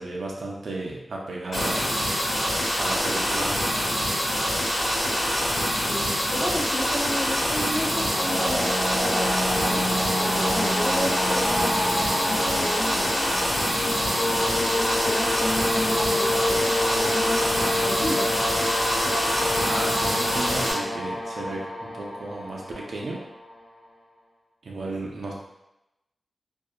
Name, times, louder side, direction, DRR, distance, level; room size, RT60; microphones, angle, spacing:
voice 1, 0.0-2.0 2.8-3.9 19.7-23.2 24.6-25.3, right 2 dB, 70° right, -2 dB, 0.4 m, -34 dB
sound 1, 1.5-20.7, equal, 85° left, 1.3 m, -25 dB
voice 2, 5.8-9.3 9.7-13.1 13.6-14.2 14.6-18.3, equal, 60° left, -4 dB, 0.5 m, -33 dB
sound 2, 7.7-23.5, left 1 dB, 25° left, 0.9 m, -28 dB
2.6 x 2.1 x 2.3 m, 0.90 s
wide cardioid pair, 140°, 0 cm